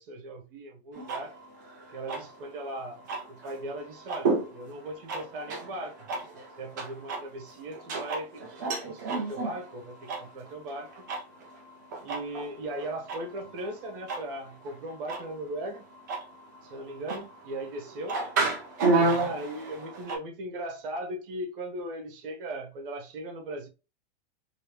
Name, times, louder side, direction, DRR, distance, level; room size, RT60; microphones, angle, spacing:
voice 1, 0.0-1.4 1.9-3.0 3.3-6.0 6.6-11.1 12.0-15.8 16.6-18.2 18.9-23.7, right 1 dB, 55° right, 1.1 m, -38 dB
sound 1, 0.9-20.2, right 3 dB, 20° right, 0.3 m, -33 dB
3.2 x 2.8 x 3.1 m
supercardioid pair, 165°, 32 cm